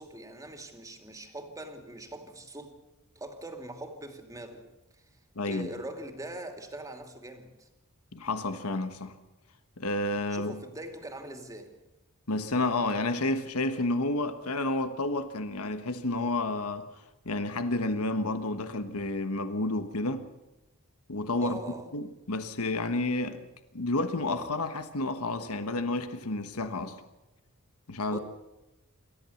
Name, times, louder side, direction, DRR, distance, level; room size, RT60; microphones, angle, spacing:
voice 1, 0.0-2.7 3.2-4.6 5.5-7.7 10.3-11.8 21.4-21.9 28.1-28.2, right 1 dB, 15° right, 2.5 m, -42 dB
voice 2, 5.3-5.7 8.1-9.1 9.8-10.6 12.3-16.9 17.2-20.2 21.1-21.6 21.9-23.4 23.7-27.0 27.9-28.2, left 2 dB, 85° left, 1.3 m, -30 dB
27.5 x 14.0 x 7.2 m
head